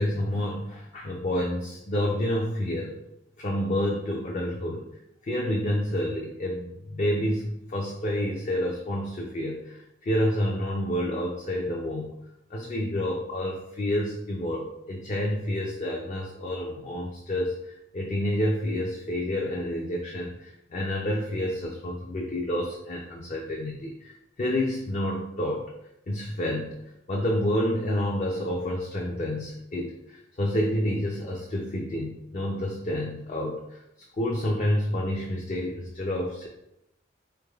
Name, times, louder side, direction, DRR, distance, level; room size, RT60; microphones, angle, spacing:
voice 1, 0.0-3.0 3.4-4.9 5.2-12.1 12.5-25.7 26.1-26.8 27.1-33.8 34.1-36.5, left 1 dB, 40° left, -1 dB, 0.4 m, -29 dB
3.7 x 3.3 x 2.3 m, 0.82 s
head